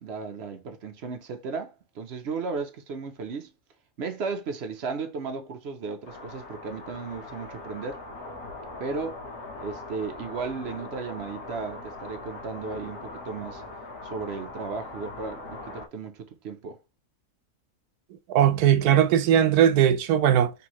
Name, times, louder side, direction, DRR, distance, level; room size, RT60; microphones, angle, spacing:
voice 1, 0.0-3.5 4.0-8.0 8.8-9.2 9.6-13.6 14.0-16.8, right 4 dB, 60° right, 0.7 m, -35 dB
sound 1, 6.1-15.9, left 2 dB, 75° left, 1.5 m, -41 dB
voice 2, 18.3-20.5, right 10 dB, 80° right, 1.1 m, -19 dB
4.4 x 3.4 x 2.9 m
omnidirectional pair, 1.6 m